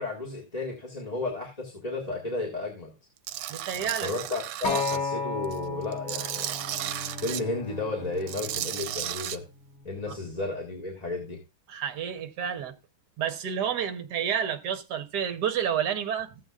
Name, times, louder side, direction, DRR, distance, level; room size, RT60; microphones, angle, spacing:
voice 1, 0.0-2.9 4.0-6.5 7.2-9.4 9.8-11.4, left 2 dB, 20° left, 1.8 m, -33 dB
Tools, 3.3-5.0 5.4-7.4 8.2-9.4, right 12 dB, 80° right, 1.4 m, -34 dB
voice 2, 3.5-4.1 11.7-12.7 13.2-16.3, right 8 dB, 60° right, 1.4 m, -30 dB
Acoustic guitar, 4.6-8.9 9.7-9.8, left 4 dB, 85° left, 2.6 m, -34 dB
Bowed string instrument, 6.3-10.2, left 2 dB, 55° left, 0.7 m, -46 dB
15.0 x 7.8 x 2.4 m
omnidirectional pair, 2.2 m